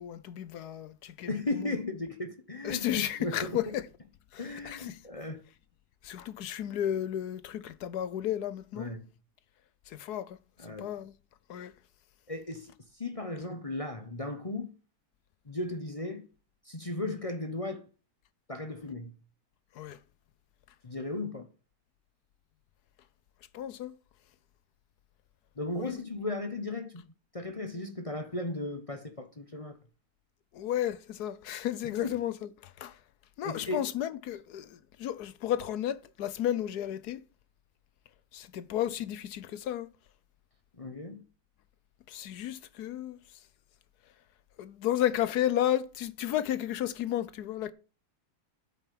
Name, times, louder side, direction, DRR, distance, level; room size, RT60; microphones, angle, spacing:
voice 1, 0.0-1.7 2.6-3.9 4.3-5.0 6.0-8.9 9.9-10.4 10.8-11.1 11.5-11.7 19.7-20.0 23.5-23.9 25.8-26.0 30.5-33.0 33.4-37.2 38.3-39.9 42.1-43.2 44.6-47.7, left 11 dB, 75° left, 1.3 m, -33 dB
voice 2, 1.3-2.9 3.2-3.6 4.4-5.4 8.7-9.1 10.6-10.9 12.3-14.7 15.5-16.3 16.6-17.8 18.5-19.2 20.8-21.5 25.6-27.0 27.3-29.8 31.8-32.2 33.4-33.9 40.8-41.2, left 2 dB, 25° left, 0.8 m, -36 dB
8.8 x 5.9 x 7.6 m
omnidirectional pair, 1.8 m